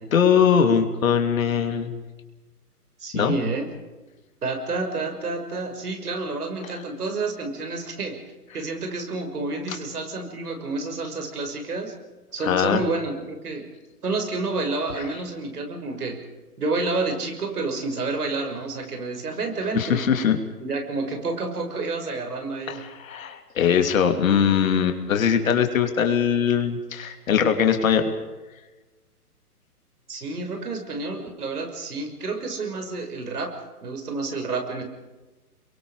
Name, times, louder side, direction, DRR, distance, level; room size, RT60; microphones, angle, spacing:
voice 1, 0.0-2.0 3.1-3.4 6.7-6.8 9.7-9.8 12.4-12.8 19.7-20.4 22.7-28.1, left 7 dB, 60° left, 5 dB, 3.1 m, -21 dB
voice 2, 3.0-3.7 4.4-8.2 8.5-11.9 12.3-13.7 14.0-16.2 16.6-20.1 20.6-22.8 30.1-33.5 33.8-34.8, right 3 dB, 75° right, 4 dB, 6.5 m, -29 dB
28.0 x 23.0 x 5.1 m, 1.2 s
hypercardioid pair, 135°, 46 cm